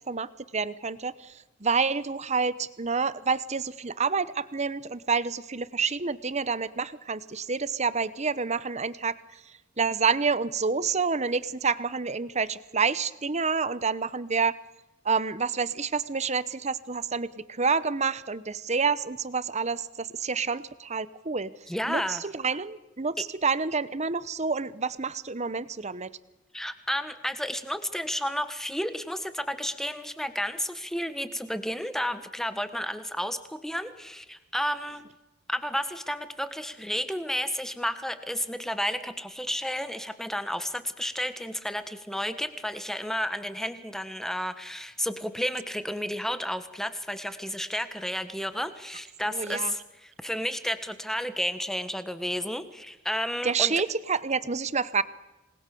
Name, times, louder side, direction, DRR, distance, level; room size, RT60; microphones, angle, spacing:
voice 1, 0.1-14.6 15.0-21.5 21.9-26.1 49.3-49.7 53.4-55.0, right 5 dB, 35° right, 16 dB, 0.9 m, -28 dB
voice 2, 21.7-22.2 26.5-35.1 35.5-53.7, equal, ahead, 10 dB, 1.5 m, -32 dB
27.0 x 20.5 x 6.9 m, 1.0 s
head